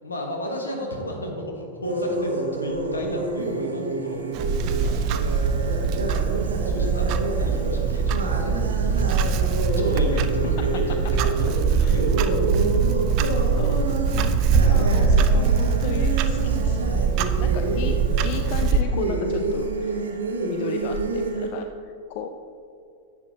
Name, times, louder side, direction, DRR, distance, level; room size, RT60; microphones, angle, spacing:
voice 1, 0.0-6.0 6.6-10.6 10.9-11.0 11.7-12.7, equal, 75° left, 1 dB, 1.3 m, -34 dB
sound 1, 1.8-21.5, right 2 dB, 75° right, 0.9 m, -29 dB
Clock, 4.3-18.8, right 5 dB, 40° right, 0.4 m, -22 dB
voice 2, 13.6-18.0 18.2-20.1 20.5-22.6, left 8 dB, 45° left, 7 dB, 0.4 m, -35 dB
10.5 x 7.8 x 2.7 m, 2.5 s
figure-of-eight pair, 90°, 0 cm